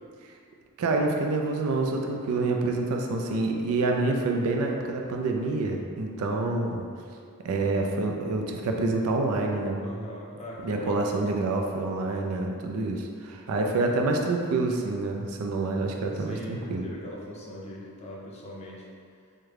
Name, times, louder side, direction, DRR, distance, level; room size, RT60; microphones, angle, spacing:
voice 1, 0.8-6.9 7.4-9.8 10.6-16.9, right 3 dB, 70° right, 2 dB, 0.4 m, -27 dB
voice 2, 9.8-11.2 13.5-14.1 16.1-18.9, left 1 dB, 30° left, -3 dB, 0.5 m, -41 dB
3.6 x 2.1 x 3.2 m, 2.3 s
head